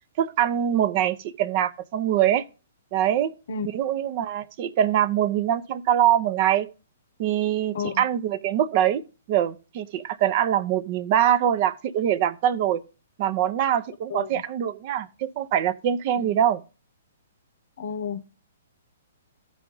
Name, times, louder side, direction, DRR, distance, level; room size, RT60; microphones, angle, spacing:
voice 1, 0.2-2.4 2.9-3.3 3.7-6.7 7.2-9.0 9.3-12.8 13.2-16.6, right 10 dB, 45° right, 0.7 m, -23 dB
voice 2, 14.1-14.4 16.2-16.4 17.8-18.2, left 6 dB, 65° left, 0.7 m, -31 dB
13.5 x 4.9 x 3.8 m
hypercardioid pair, 125°, 0 cm